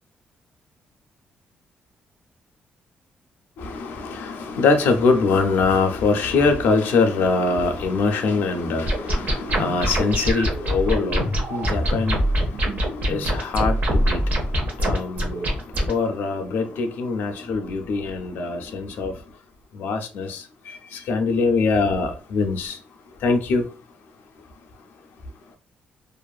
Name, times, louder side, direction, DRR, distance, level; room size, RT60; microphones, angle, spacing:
voice 1, 3.6-12.2 13.1-14.2 14.8-15.5 15.9-19.1 19.8-20.4 21.1-22.8 23.2-23.6, left 4 dB, 80° left, 0.5 m, -23 dB
sound 1, 8.9-15.9, equal, 55° right, 0.8 m, -23 dB
2.5 x 2.4 x 2.3 m
cardioid pair, 175°, 3 cm